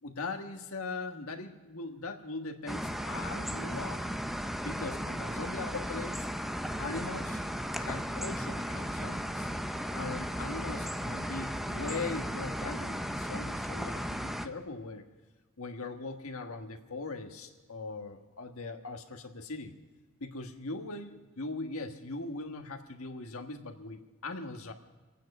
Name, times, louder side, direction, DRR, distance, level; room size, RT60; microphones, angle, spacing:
voice 1, 0.0-4.0 4.6-6.3 6.8-7.4 7.8-9.5 9.9-15.0 15.6-19.7 20.2-24.7, left 3 dB, 85° left, 4 dB, 1.5 m, -40 dB
sound 1, 2.7-14.5, equal, ahead, 0.5 m, -35 dB
25.5 x 9.1 x 5.4 m, 1.3 s
head